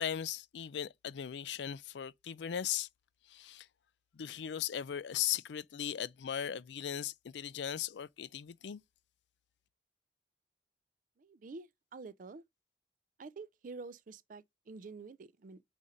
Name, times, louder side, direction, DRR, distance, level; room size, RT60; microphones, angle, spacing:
voice 1, 0.0-2.9 3.3-3.7 4.1-8.8, left 9 dB, 80° left, 0.4 m, -38 dB
voice 2, 11.2-12.4 13.2-15.6, right 4 dB, 50° right, 0.4 m, -48 dB
5.1 x 4.2 x 5.0 m
head